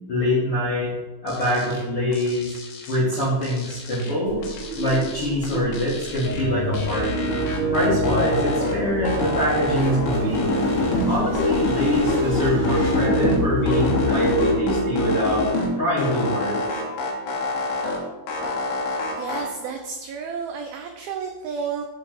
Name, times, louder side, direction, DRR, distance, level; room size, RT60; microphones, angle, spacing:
voice 1, 0.1-0.9 1.2-2.6 2.9-4.4 4.8-7.4 7.7-10.7 11.0-15.4 15.8-16.6, equal, 55° left, -8 dB, 1.5 m, -24 dB
sound 1, 1.3-1.8 2.1-4.1 4.4-6.4 6.7-8.8 9.0-11.1 11.4-13.4 13.7-15.7 16.0-18.0 18.3-19.4, left 2 dB, 80° left, 3.6 m, -26 dB
sound 2, 4.2-14.7, equal, 10° right, 0.8 m, -36 dB
sound 3, 6.3-15.5, equal, 55° right, 2.1 m, -27 dB
voice 2, 19.1-21.9, right 6 dB, 85° right, 3 dB, 2.1 m, -31 dB
7.4 x 3.9 x 5.8 m, 1.1 s
omnidirectional pair, 5.0 m